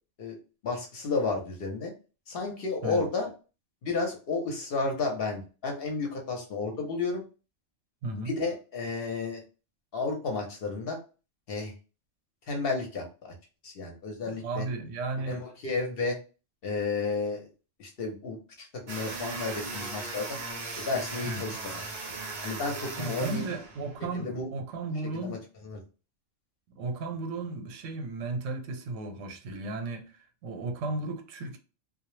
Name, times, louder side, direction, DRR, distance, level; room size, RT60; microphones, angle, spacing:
voice 1, 0.6-1.9 2.3-3.3 3.8-7.2 8.2-9.4 9.9-11.0 11.5-11.7 12.5-13.3 13.6-14.6 15.3-16.2 16.6-17.4 17.8-20.4 20.8-21.8 22.4-23.5 24.1-24.5 25.1-25.4 25.6-25.8, left 3 dB, 55° left, 0.8 m, -32 dB
voice 2, 8.0-8.3 14.2-15.4 21.2-21.6 23.0-25.4 26.8-31.6, right 2 dB, 85° right, 0.9 m, -35 dB
sound 1, 18.9-24.0, right 3 dB, 50° right, 0.5 m, -38 dB
2.1 x 2.0 x 3.0 m
omnidirectional pair, 1.3 m